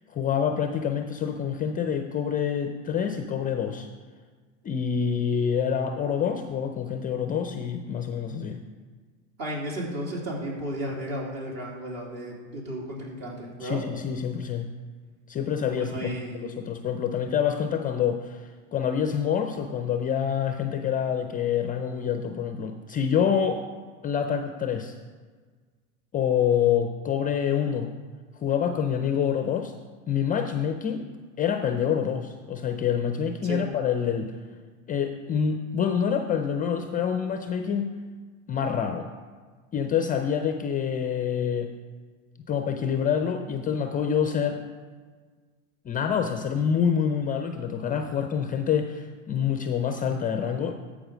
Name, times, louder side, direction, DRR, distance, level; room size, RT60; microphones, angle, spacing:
voice 1, 0.1-3.9 4.6-8.6 13.6-14.7 15.3-23.6 24.0-24.9 26.1-27.9 28.3-29.7 30.1-31.0 31.4-34.3 34.9-38.0 38.5-39.1 39.7-41.7 42.5-44.6 45.8-50.7, left 7 dB, 20° left, 7 dB, 0.4 m, -27 dB
voice 2, 9.4-13.8 15.7-16.5 33.4-33.6, right 1 dB, 50° right, -2 dB, 3.3 m, -34 dB
13.5 x 5.0 x 5.0 m, 1.5 s
hypercardioid pair, 100°, 43 cm